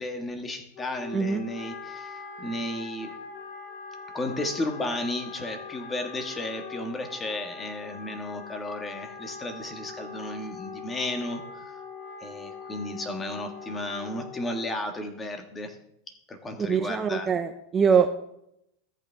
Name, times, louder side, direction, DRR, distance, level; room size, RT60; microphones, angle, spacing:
voice 1, 0.0-3.1 4.1-11.6 12.2-15.8 16.3-17.3, left 1 dB, 15° left, 5 dB, 1.6 m, -34 dB
Wind instrument woodwind instrument, 0.7-14.8, left 5 dB, 50° left, 3.6 m, -42 dB
voice 2, 16.6-18.3, right 6 dB, 20° right, 7 dB, 0.6 m, -23 dB
14.0 x 8.4 x 3.5 m, 0.78 s
supercardioid pair, 135°, 0 cm